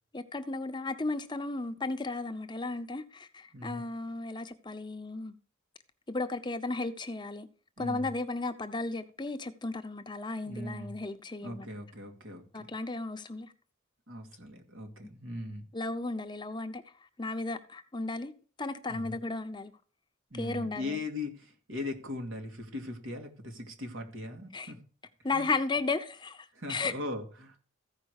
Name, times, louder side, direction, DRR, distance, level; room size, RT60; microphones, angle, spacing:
voice 1, 0.1-5.3 6.1-7.5 7.8-11.7 12.5-13.5 15.7-18.3 18.6-19.7 20.3-21.0 24.5-24.7 25.2-26.9, left 3 dB, 20° left, 0.7 m, -35 dB
voice 2, 3.5-3.8 7.8-8.1 10.5-11.0 11.4-12.7 14.1-15.6 18.9-19.2 20.3-24.8 25.3-25.5 26.5-27.6, left 2 dB, 80° right, 2.4 m, -39 dB
14.5 x 5.1 x 6.5 m
head